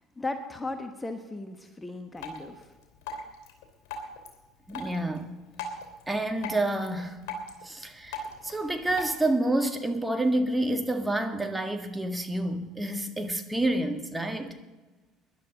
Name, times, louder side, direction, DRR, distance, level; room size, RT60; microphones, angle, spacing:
voice 1, 0.2-2.7, left 2 dB, 15° left, 7 dB, 1.4 m, -36 dB
Drip, 2.2-9.2, left 2 dB, 60° left, 2.9 m, -42 dB
voice 2, 4.7-5.4 6.1-7.2 7.6-14.5, right 1 dB, 10° right, 5 dB, 1.7 m, -28 dB
23.5 x 11.5 x 4.1 m, 1.2 s
figure-of-eight pair, 60°, 0 cm